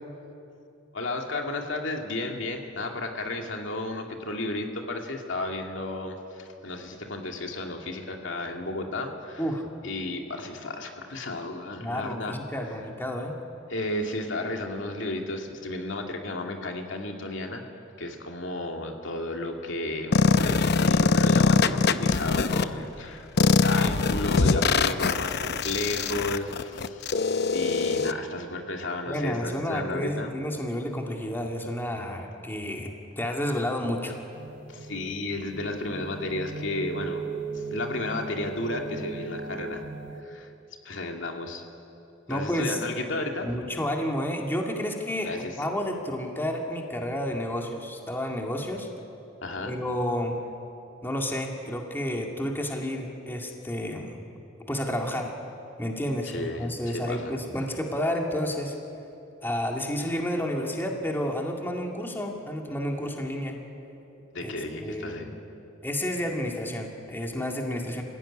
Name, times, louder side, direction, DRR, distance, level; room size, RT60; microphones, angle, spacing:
voice 1, 0.9-9.4 9.8-12.4 13.7-17.6 18.0-27.2 27.5-30.3 34.7-37.2 37.5-39.8 40.2-40.5 40.8-41.6 42.3-43.6 45.2-45.6 49.4-49.8 56.2-57.3 64.3-65.4, left 2 dB, 70° left, 2 dB, 2.4 m, -33 dB
voice 2, 11.8-13.3 29.1-32.9 33.2-34.2 42.3-42.8 43.4-48.9 49.6-50.4 51.0-54.2 54.7-55.3 55.8-58.7 59.4-63.6 64.4-64.5 64.8-65.3 65.8-68.0, equal, 10° left, 1 dB, 2.2 m, -30 dB
sound 1, 20.1-22.6 23.4-28.1, left 4 dB, 55° left, 0.7 m, -22 dB
sound 2, 34.3-40.2, right 4 dB, 65° right, 1.6 m, -38 dB
26.5 x 16.5 x 9.9 m, 2.8 s
head